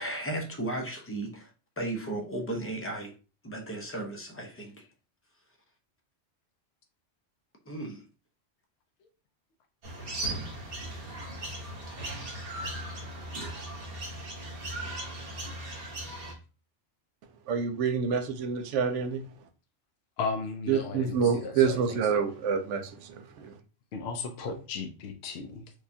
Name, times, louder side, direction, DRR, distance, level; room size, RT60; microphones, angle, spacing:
voice 1, 0.0-1.5 1.8-3.1 3.4-4.8 7.7-8.0, right 1 dB, 15° left, 0.5 m, -35 dB
sound 1, 9.8-16.3, right 1 dB, 50° right, 1.2 m, -37 dB
voice 2, 17.5-19.3 20.7-23.5, right 6 dB, 75° right, 0.9 m, -27 dB
voice 3, 20.2-22.2 23.9-25.7, left 4 dB, 65° left, 0.7 m, -35 dB
4.7 x 2.3 x 2.7 m
omnidirectional pair, 1.3 m